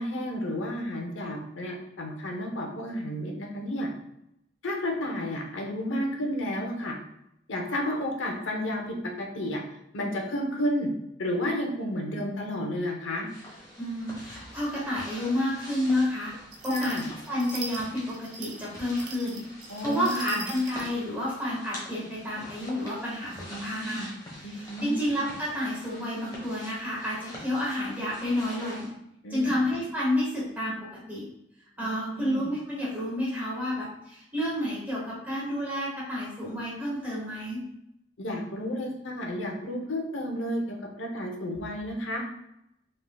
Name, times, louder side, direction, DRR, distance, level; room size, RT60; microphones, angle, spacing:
voice 1, 0.0-3.9 4.6-6.9 7.5-9.6 9.9-10.9 11.2-13.3 16.7-17.0 19.7-20.4 23.5-24.1 24.4-25.0 29.2-29.5 31.8-32.4 38.2-42.2, equal, 75° left, 1 dB, 0.8 m, -32 dB
sound 1, 13.3-28.9, left 1 dB, 20° left, 1.2 m, -45 dB
voice 2, 13.8-16.3 16.6-17.0 17.3-19.4 19.8-24.1 24.4-28.9 29.3-30.8 31.1-31.3 31.8-37.6, left 1 dB, 10° right, -6 dB, 1.5 m, -30 dB
sound 2, 16.5-20.9, right 3 dB, 65° right, 0.7 m, -41 dB
4.6 x 3.7 x 2.3 m, 0.81 s
head